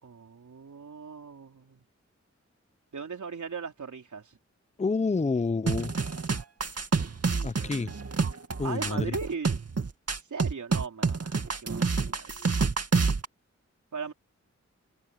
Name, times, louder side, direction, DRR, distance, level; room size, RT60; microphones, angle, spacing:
voice 1, 0.0-1.8 2.9-4.4 7.3-7.6 8.6-9.5 10.3-12.4 13.9-14.1, right 5 dB, 85° right, 3.8 m, -38 dB
voice 2, 4.8-5.9 7.4-7.9 8.6-9.1, left 4 dB, 25° left, 0.7 m, -28 dB
sound 1, 5.7-13.3, right 4 dB, 55° right, 2.3 m, -28 dB
cardioid pair, 55°, 29 cm